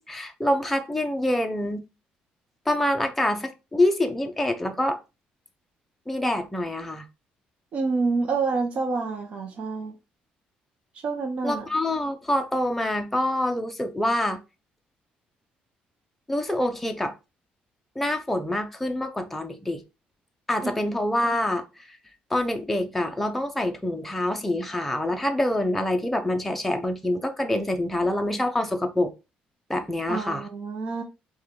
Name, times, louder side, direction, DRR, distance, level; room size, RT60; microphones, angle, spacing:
voice 1, 0.1-1.8 2.7-5.0 6.1-7.0 11.4-14.4 16.3-17.1 18.0-19.8 20.5-21.6 22.3-29.1 29.7-30.5, left 1 dB, 5° left, 0.5 m, -26 dB
voice 2, 7.7-9.9 11.0-11.7 20.6-20.7 30.1-31.0, right 4 dB, 40° right, 0.6 m, -27 dB
4.7 x 2.2 x 3.6 m
cardioid pair, 165°, 3 cm